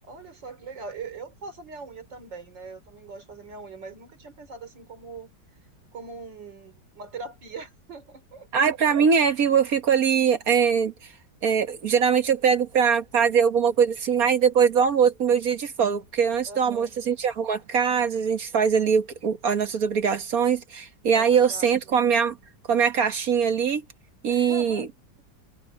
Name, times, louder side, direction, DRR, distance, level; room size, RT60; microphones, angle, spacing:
voice 1, 0.1-5.3 5.9-8.5 16.5-16.9 21.1-22.0 24.3-24.9, right 3 dB, 80° right, 4.0 m, -41 dB
voice 2, 8.5-10.9 11.4-22.4 22.7-23.8 24.2-24.9, right 7 dB, 55° right, 1.8 m, -22 dB
omnidirectional pair, 1.9 m